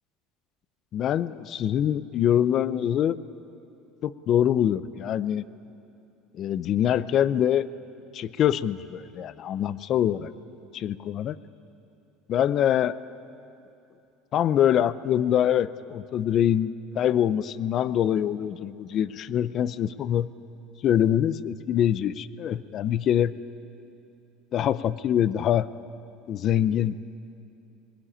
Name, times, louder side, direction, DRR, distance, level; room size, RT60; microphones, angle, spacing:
voice 1, 0.9-3.2 4.0-5.4 6.3-7.7 8.1-10.3 10.7-11.4 12.3-13.0 14.3-20.3 20.8-23.3 24.5-25.7 26.3-27.0, left 10 dB, 30° left, 17 dB, 0.5 m, -24 dB
21.5 x 18.5 x 10.0 m, 2.7 s
cardioid pair, 175°, 0 cm